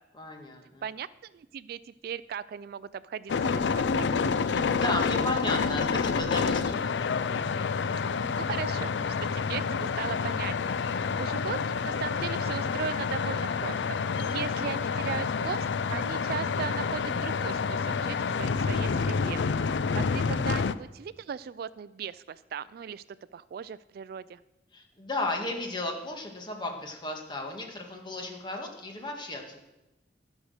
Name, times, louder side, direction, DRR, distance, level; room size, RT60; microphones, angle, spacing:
voice 1, 0.1-0.8 4.4-7.1 19.3-19.9 24.7-29.6, left 2 dB, 25° left, 2 dB, 1.8 m, -35 dB
voice 2, 0.8-4.1 8.4-11.6 11.8-19.4 19.9-23.0 23.3-24.4, right 7 dB, 60° right, 18 dB, 0.3 m, -38 dB
sound 1, 3.3-20.7, left 5 dB, 85° left, 0.5 m, -28 dB
13.5 x 6.3 x 6.5 m, 0.97 s
head